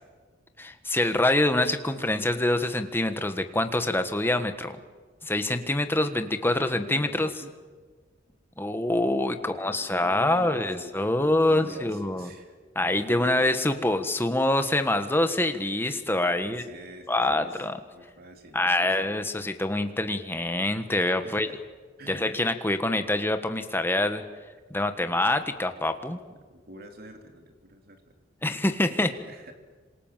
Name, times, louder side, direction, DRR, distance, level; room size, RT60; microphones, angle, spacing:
voice 1, 0.6-4.8 5.2-7.3 8.6-12.3 12.7-16.6 17.1-17.8 18.5-21.5 22.1-24.2 24.7-26.2 28.4-29.1, left 1 dB, 10° left, 8 dB, 1.5 m, -25 dB
voice 2, 6.4-7.6 9.3-12.6 12.8-13.6 16.4-17.7 17.9-19.1 21.2-21.6 22.0-22.3 26.3-28.2 29.2-29.5, right 1 dB, 55° right, 4 dB, 3.2 m, -47 dB
27.5 x 26.5 x 7.5 m, 1.4 s
head